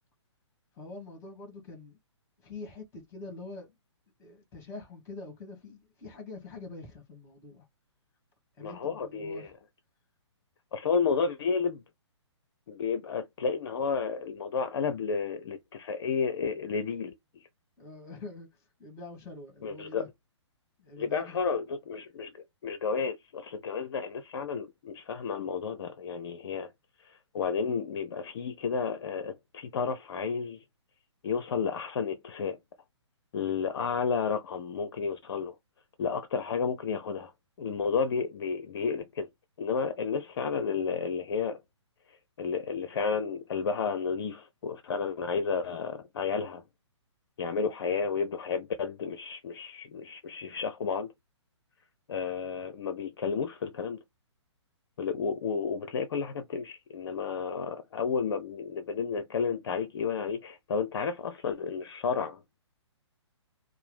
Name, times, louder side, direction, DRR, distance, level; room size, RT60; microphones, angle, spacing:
voice 1, 0.7-2.0 2.4-3.8 4.2-7.7 8.6-9.5 17.8-20.1 20.8-21.5, left 3 dB, 20° left, 2.3 m, -45 dB
voice 2, 8.6-9.5 10.7-11.8 12.7-17.5 19.6-20.0 21.0-26.7 27.0-30.6 31.2-32.6 33.3-35.6 36.0-37.3 37.6-39.3 39.6-41.6 42.1-46.6 47.4-51.1 52.1-54.0 55.0-62.4, left 5 dB, 55° left, 0.6 m, -32 dB
4.5 x 2.0 x 3.3 m
figure-of-eight pair, 130°, 15 cm